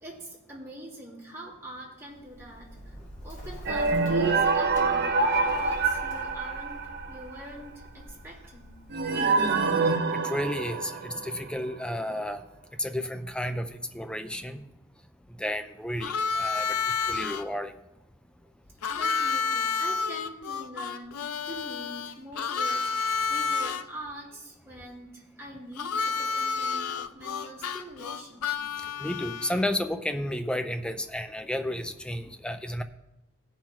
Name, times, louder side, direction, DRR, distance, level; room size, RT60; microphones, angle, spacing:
voice 1, 0.0-3.0 3.2-8.8 18.5-18.6 18.9-28.5 28.8-29.0, right 1 dB, 10° right, -7 dB, 3.1 m, -44 dB
Bird, 2.0-9.8, equal, 35° left, 1.9 m, -45 dB
sound 1, 3.7-7.3 8.9-11.5, right 4 dB, 50° right, 0.9 m, -26 dB
voice 2, 10.2-12.4 12.8-14.6 15.4-17.7 29.0-32.8, left 1 dB, 5° left, 8 dB, 0.5 m, -32 dB
Harmonica, 16.0-17.4 18.8-23.8 25.8-29.7, left 5 dB, 80° left, 0.5 m, -30 dB
17.0 x 5.6 x 4.5 m, 0.91 s
head